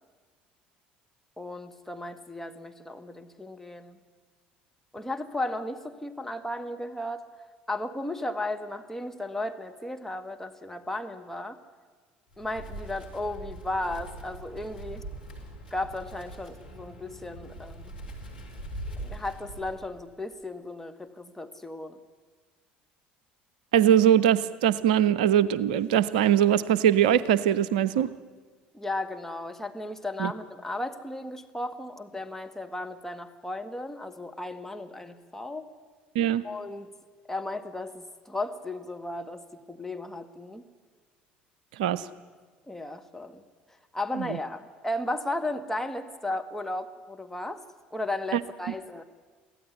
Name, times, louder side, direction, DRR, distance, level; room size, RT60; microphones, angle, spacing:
voice 1, 1.4-4.0 4.9-7.3 7.7-11.6 12.4-15.0 15.7-17.9 19.0-22.0 28.7-35.7 36.4-36.9 37.3-39.4 39.7-40.6 42.7-43.4 43.9-47.6 47.9-49.0, left 1 dB, 10° left, 6 dB, 1.7 m, -35 dB
Wind, 12.3-20.1, right 1 dB, 85° left, 3.2 m, -42 dB
voice 2, 23.7-28.1 30.2-30.3 36.1-36.4 41.8-42.1 48.3-48.4, right 10 dB, 70° right, 17 dB, 0.6 m, -22 dB
23.5 x 15.5 x 9.7 m, 1.5 s
figure-of-eight pair, 60°, 5 cm